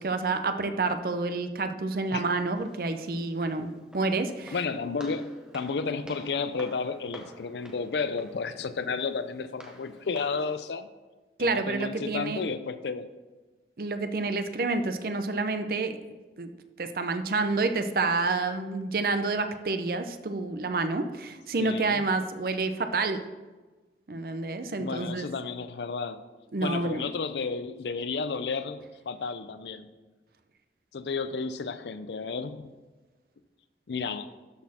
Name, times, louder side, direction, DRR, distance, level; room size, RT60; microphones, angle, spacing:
voice 1, 0.0-3.7 3.9-4.5 11.4-12.4 13.8-15.9 16.4-16.5 16.8-23.2 24.1-25.3 26.5-27.1, right 3 dB, 55° right, 8 dB, 0.6 m, -28 dB
Walk footsteps, 2.5-10.6, equal, 5° right, 0.8 m, -50 dB
voice 2, 4.5-10.9 11.4-13.1 21.6-22.0 24.8-26.2 26.6-29.9 30.9-32.6 33.9-34.3, left 4 dB, 75° left, 12 dB, 0.5 m, -32 dB
12.5 x 4.2 x 4.2 m, 1.2 s
head